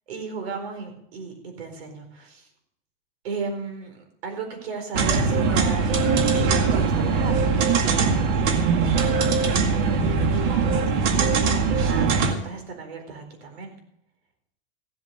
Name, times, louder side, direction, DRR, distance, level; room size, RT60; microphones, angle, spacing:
voice 1, 0.1-2.5 3.2-5.9 6.2-13.7, right 4 dB, 90° right, 5 dB, 4.5 m, -36 dB
sound 1, 4.9-12.3, right 5 dB, 50° right, 2.1 m, -21 dB
16.0 x 7.8 x 6.8 m, 0.72 s
supercardioid pair, 160°, 30 cm